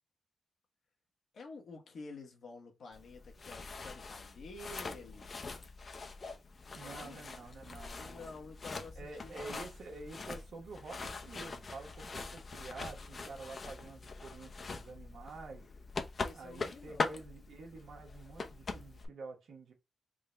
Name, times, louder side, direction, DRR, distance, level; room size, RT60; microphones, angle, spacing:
voice 1, 1.3-5.3 6.8-7.3 8.0-9.7 13.0-13.4 16.2-17.2, left 3 dB, 75° left, 1.0 m, -50 dB
sound 1, 2.9-19.1, left 3 dB, 50° left, 0.6 m, -43 dB
voice 2, 6.7-8.3 9.0-15.6 16.3-19.7, right 3 dB, 85° right, 1.0 m, -49 dB
3.7 x 2.2 x 3.8 m
cardioid pair, 80°, 0 cm